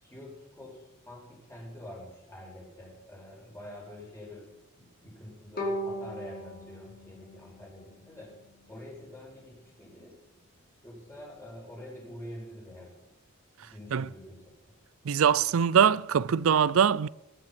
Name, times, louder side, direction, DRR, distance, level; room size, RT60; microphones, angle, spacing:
voice 1, 0.0-4.5 4.8-8.3 8.7-10.2 10.8-13.0 13.6-14.4, left 1 dB, 15° left, 5.7 m, -46 dB
Bowed string instrument, 5.6-8.6, equal, 45° left, 4.9 m, -38 dB
voice 2, 15.1-17.1, right 7 dB, 80° right, 0.4 m, -23 dB
20.5 x 10.0 x 6.0 m
head